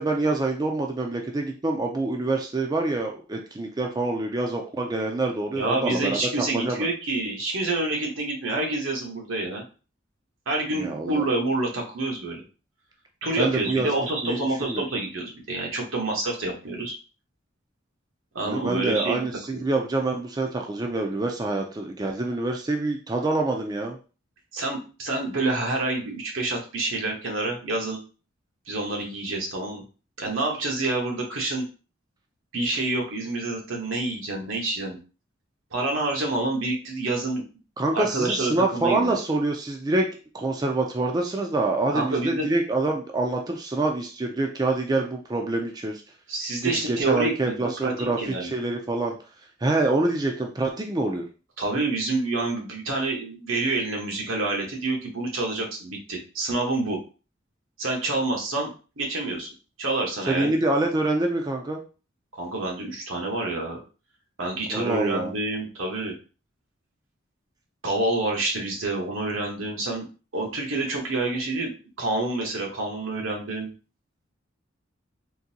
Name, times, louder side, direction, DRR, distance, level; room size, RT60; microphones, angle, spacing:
voice 1, 0.0-6.9 10.8-11.2 13.4-13.9 14.2-14.4 14.7-14.8 18.4-24.0 37.8-40.1 40.3-46.0 46.6-49.2 49.6-51.2 60.2-61.8 64.7-65.3, right 2 dB, 20° right, 2 dB, 0.4 m, -26 dB
voice 2, 5.5-9.6 10.5-12.4 13.2-16.9 18.3-19.2 19.5-19.6 24.5-28.0 28.7-29.8 30.2-31.6 32.5-35.0 35.7-37.4 37.9-39.1 41.9-42.5 46.3-48.5 51.6-57.0 57.8-58.7 59.0-59.5 59.8-60.5 62.3-63.8 64.4-66.2 67.8-70.1 70.3-71.7 72.0-73.7, right 2 dB, 85° right, 0 dB, 1.1 m, -27 dB
3.8 x 2.6 x 2.7 m, 0.35 s
head